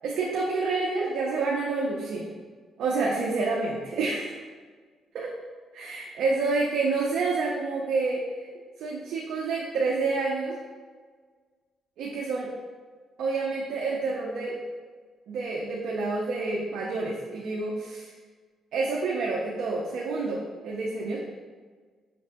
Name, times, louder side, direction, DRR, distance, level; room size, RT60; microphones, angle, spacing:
voice 1, 0.0-2.3 2.8-4.4 5.1-5.3 5.7-8.2 8.8-10.6 12.0-12.5 13.2-14.6 15.3-18.1 18.7-21.2, right 3 dB, 75° right, -2 dB, 0.5 m, -28 dB
5.8 x 3.2 x 2.8 m, 1.5 s
cardioid pair, 90°, 0 cm